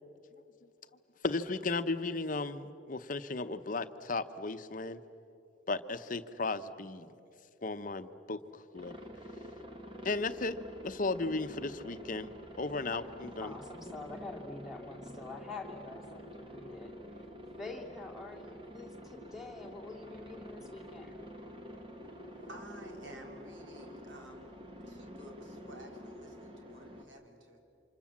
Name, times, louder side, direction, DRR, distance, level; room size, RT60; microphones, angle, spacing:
voice 1, 1.2-5.0 5.7-7.1 7.6-9.0 10.0-10.6 10.8-12.3 12.6-13.5, left 3 dB, 45° left, 10 dB, 0.9 m, -35 dB
Aircraft, 8.7-27.0, equal, 30° right, 2.1 m, -48 dB
voice 2, 13.4-17.2 17.6-21.2, left 3 dB, ahead, 1 dB, 2.9 m, -46 dB
voice 3, 22.4-24.5 24.9-27.6, right 1 dB, 85° right, 2 dB, 3.5 m, -53 dB
28.5 x 26.0 x 7.3 m, 2.7 s
head